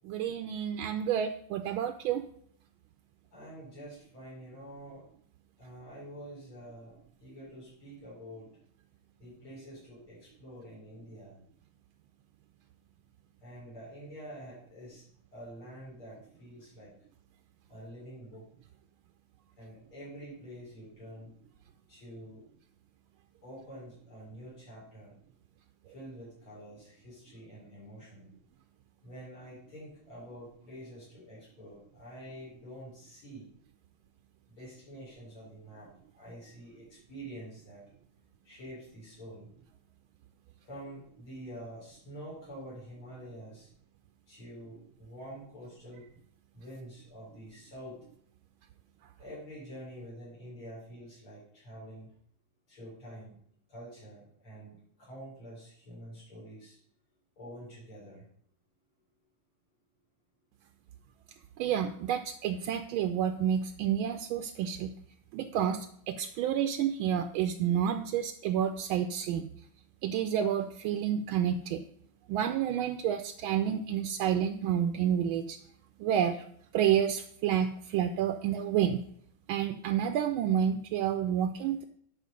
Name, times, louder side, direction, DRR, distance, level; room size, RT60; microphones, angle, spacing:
voice 1, 0.1-2.2 61.6-64.9 65.3-69.5 70.0-71.8 72.3-75.6 76.0-76.4 76.7-79.0 79.5-81.8, right 9 dB, 80° right, 7 dB, 1.4 m, -29 dB
voice 2, 3.3-5.0 5.6-8.5 9.2-11.4 13.4-15.0 15.3-16.9 17.7-18.5 19.6-21.3 21.9-22.5 23.4-25.2 25.9-28.3 29.0-33.5 34.5-35.9 36.1-37.8 38.4-39.5 40.6-43.7 44.3-46.0 46.5-48.0 49.2-52.1 52.7-53.4 53.7-56.8 57.4-58.3, equal, 80° left, -8 dB, 5.2 m, -47 dB
9.4 x 5.6 x 5.2 m, 0.64 s
omnidirectional pair, 2.3 m